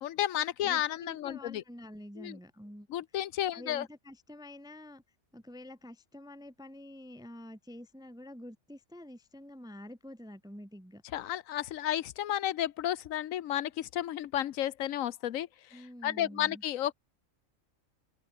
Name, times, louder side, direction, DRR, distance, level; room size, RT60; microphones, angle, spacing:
voice 1, 0.0-1.6 2.2-2.4 2.9-3.9 11.1-16.9, left 12 dB, 90° left, 1.1 m, -32 dB
voice 2, 0.6-2.9 3.5-5.0 5.3-11.0 15.7-16.6, left 1 dB, 5° right, 0.6 m, -48 dB
omnidirectional pair, 1.3 m